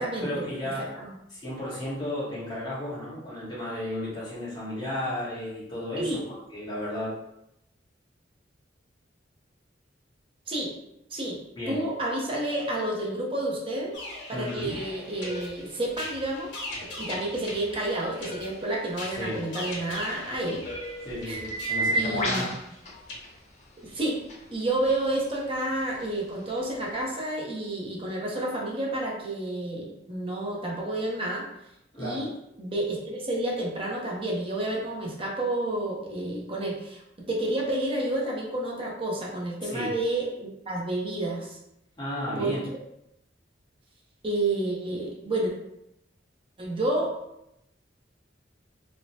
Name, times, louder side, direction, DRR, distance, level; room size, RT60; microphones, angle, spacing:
voice 1, 0.2-0.9 1.3-6.1 6.5-7.1 11.6-11.8 14.3-14.8 19.1-19.4 21.0-22.5 31.9-32.2 39.6-39.9 42.0-42.6, left 1 dB, 25° left, -8 dB, 1.1 m, -33 dB
voice 2, 11.7-14.0 14.3-16.5 17.0-20.7 21.3-21.4 21.9-22.5 23.8-24.2 24.5-31.5 31.9-32.3 32.6-37.0 37.3-41.6 42.4-42.5 44.2-45.5 46.6-47.1, right 1 dB, 30° right, -2 dB, 0.6 m, -30 dB
sound 1, 13.9-23.2, left 1 dB, 80° left, 1.0 m, -40 dB
sound 2, 14.5-27.0, right 1 dB, 40° left, 0.7 m, -37 dB
3.0 x 2.1 x 2.7 m, 0.82 s
head